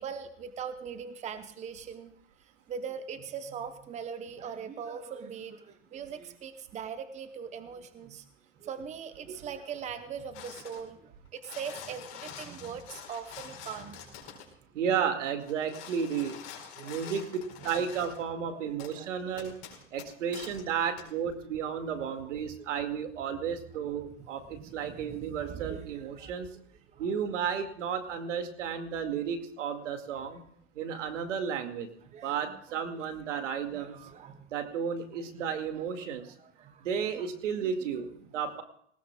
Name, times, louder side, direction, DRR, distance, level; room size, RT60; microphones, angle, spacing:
voice 1, 0.0-2.1 2.7-8.2 8.6-14.4 16.2-16.3 16.8-17.2 17.6-17.7 18.5-19.4 22.0-22.4 23.9-26.5 26.9-27.1 30.1-30.2 32.0-32.6 33.3-34.5 35.4-36.9 37.1-37.3 37.6-38.0, right 7 dB, 20° right, 9 dB, 0.9 m, -42 dB
sound 1, 10.3-10.9 11.3-14.5 15.4-18.2 18.8-18.9 19.4-20.6 21.0-21.1, left 9 dB, 45° left, 4.9 m, -46 dB
voice 2, 14.7-16.4 16.8-17.2 17.6-19.5 19.9-26.5 27.0-30.4 30.8-31.9 32.2-34.0 34.5-36.3 36.8-38.6, right 7 dB, 75° right, 6 dB, 2.3 m, -33 dB
19.5 x 19.0 x 2.4 m, 0.64 s
hypercardioid pair, 130°, 37 cm